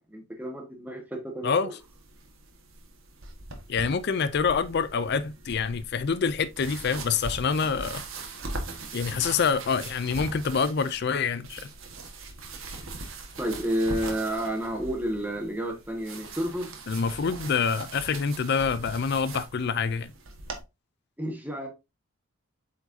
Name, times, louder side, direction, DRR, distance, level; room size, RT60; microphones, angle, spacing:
voice 1, 0.1-1.8 13.4-16.7 21.2-21.7, right 1 dB, 10° right, 1.5 m, -30 dB
sound 1, 1.8-20.6, right 2 dB, 65° right, 1.6 m, -41 dB
voice 2, 3.7-8.0 8.9-11.7 16.9-20.1, left 5 dB, 50° left, 0.4 m, -26 dB
8.2 x 4.6 x 2.7 m
head